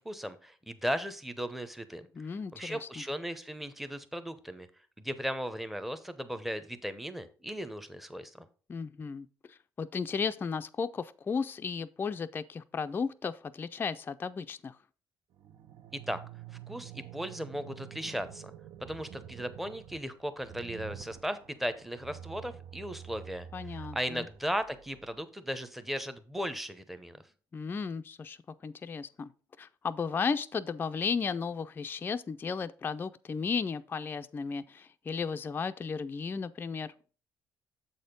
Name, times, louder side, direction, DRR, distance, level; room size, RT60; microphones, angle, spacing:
voice 1, 0.0-4.7 5.0-8.5 15.9-16.2 16.7-18.5 18.8-27.2, equal, 5° right, 0.7 m, -37 dB
voice 2, 2.1-3.0 8.7-14.8 23.5-24.3 27.5-28.4 28.6-29.3 29.6-36.9, left 5 dB, 25° left, 0.4 m, -34 dB
sound 1, 15.3-25.2, right 10 dB, 60° right, 0.5 m, -48 dB
7.5 x 4.2 x 5.1 m
cardioid pair, 105°, 8 cm